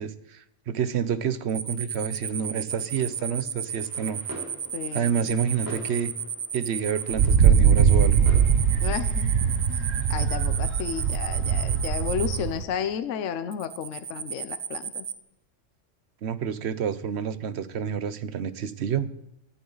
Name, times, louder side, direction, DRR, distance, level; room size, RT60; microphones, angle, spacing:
voice 1, 0.0-4.2 4.9-6.1 6.5-8.3 16.2-19.1, right 7 dB, 60° right, 14 dB, 1.0 m, -29 dB
sound 1, 1.5-12.4 13.5-15.2, right 7 dB, 45° right, 0.6 m, -33 dB
sound 2, 2.8-9.3, equal, 15° right, 5.1 m, -45 dB
voice 2, 4.7-5.3 8.8-9.3 9.7-15.1, left 8 dB, 75° left, 11 dB, 1.1 m, -33 dB
Wind, 7.1-12.6, right 7 dB, 85° right, 1.2 m, -21 dB
17.5 x 12.0 x 3.9 m, 0.81 s
omnidirectional pair, 1.3 m